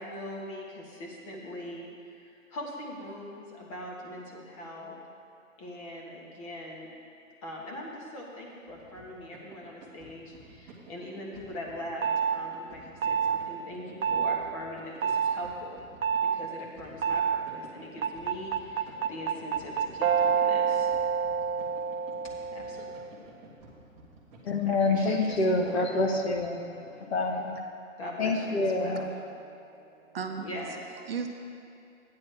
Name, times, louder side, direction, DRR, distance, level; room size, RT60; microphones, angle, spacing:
voice 1, 0.0-5.0 5.6-6.9 7.4-12.0 12.3-15.8 16.2-20.9 22.5-22.8 24.6-25.9 28.0-29.1 30.4-31.0, left 1 dB, 25° left, -2 dB, 1.3 m, -41 dB
sound 1, 8.7-26.4, right 3 dB, 15° right, 1.2 m, -52 dB
sound 2, 12.0-12.4 13.0-13.4 14.0-14.4 15.0-15.3 16.0-16.4 17.0-17.4 18.0-23.1, right 7 dB, 90° right, 0.7 m, -27 dB
voice 2, 24.4-27.6 28.2-29.1, left 2 dB, 50° left, 3 dB, 1.0 m, -27 dB
voice 3, 28.9-30.5 31.0-31.3, right 6 dB, 45° right, 5 dB, 0.6 m, -38 dB
13.0 x 9.5 x 3.3 m, 2.5 s
hypercardioid pair, 155°, 41 cm